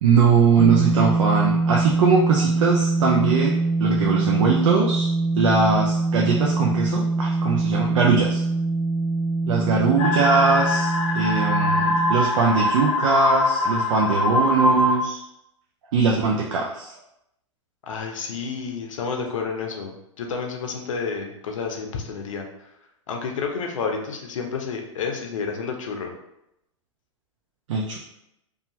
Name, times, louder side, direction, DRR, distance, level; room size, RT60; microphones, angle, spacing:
voice 1, 0.0-5.1 5.4-8.4 9.5-15.2 15.9-16.9 27.7-28.0, right 5 dB, 70° right, -1 dB, 0.4 m, -21 dB
sound 1, 0.6-12.1, right 3 dB, 5° right, 0.3 m, -23 dB
sound 2, 10.0-15.0, left 2 dB, 35° left, 0.7 m, -23 dB
voice 2, 17.8-22.5 23.1-26.1, left 5 dB, 75° left, 2 dB, 0.6 m, -30 dB
2.7 x 2.4 x 2.8 m, 0.83 s
hypercardioid pair, 110°, 17 cm